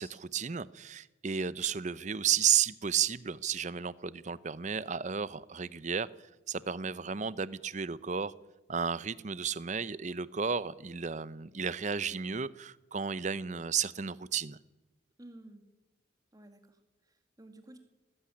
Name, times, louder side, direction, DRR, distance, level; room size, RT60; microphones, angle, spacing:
voice 1, 0.0-6.1 6.5-8.3 8.7-14.6, right 7 dB, 35° right, 18 dB, 0.6 m, -33 dB
voice 2, 15.2-15.6 16.3-17.8, right 1 dB, 20° right, 6 dB, 2.2 m, -53 dB
18.5 x 14.5 x 10.0 m, 1.1 s
head